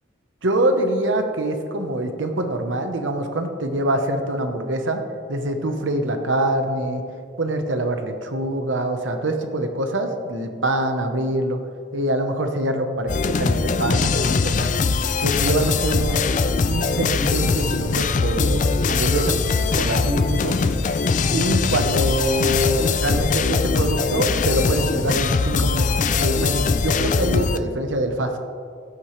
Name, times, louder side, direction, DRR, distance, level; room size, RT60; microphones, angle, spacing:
voice 1, 0.4-5.0 5.3-7.0 7.4-11.6 11.9-13.1 13.4-14.7 15.2-16.2 16.7-19.3 19.7-20.6 21.3-25.9 26.1-28.4, right 1 dB, 85° right, 6 dB, 1.0 m, -24 dB
sound 1, 13.1-27.6, left 4 dB, 40° left, 0.4 m, -21 dB
15.5 x 9.0 x 3.2 m, 2.3 s
head